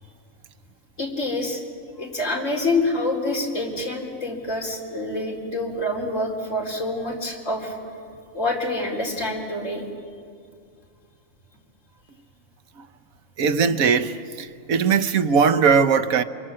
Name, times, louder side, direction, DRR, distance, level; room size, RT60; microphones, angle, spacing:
voice 1, 1.0-1.6 2.0-7.7 8.3-9.8, left 2 dB, 65° left, 4.5 m, -26 dB
voice 2, 13.4-16.2, right 6 dB, 85° right, 1.4 m, -20 dB
28.5 x 26.0 x 7.7 m
omnidirectional pair, 1.4 m